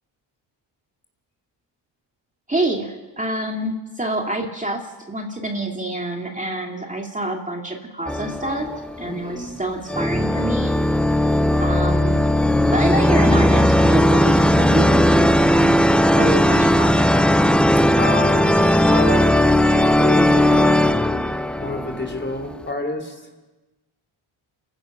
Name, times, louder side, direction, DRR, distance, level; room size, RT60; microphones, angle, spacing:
voice 1, 2.5-8.7 9.0-10.8 11.6-12.2 12.7-17.3, right 1 dB, 15° right, 1 dB, 2.5 m, -27 dB
sound 1, 8.1-9.3 9.9-22.5, left 1 dB, ahead, 0.5 m, -17 dB
voice 2, 9.1-9.6 18.0-19.4 19.7-23.2, left 2 dB, 20° left, 6 dB, 3.5 m, -28 dB
28.5 x 15.5 x 6.0 m, 1.2 s
cardioid pair, 90°, 48 cm